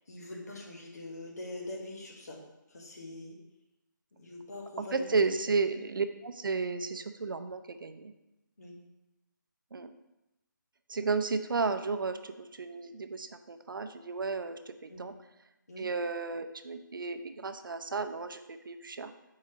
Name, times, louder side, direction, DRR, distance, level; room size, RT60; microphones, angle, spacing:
voice 1, 0.0-2.4 2.7-3.4 4.1-5.5 8.6-8.8 14.9-15.0 15.7-15.9, left 2 dB, 50° left, 0 dB, 1.4 m, -43 dB
voice 2, 4.9-8.1 9.7-9.9 10.9-15.1 15.8-19.1, right 4 dB, 80° right, 9 dB, 0.6 m, -33 dB
4.7 x 4.3 x 5.0 m, 0.96 s
hypercardioid pair, 180°, 11 cm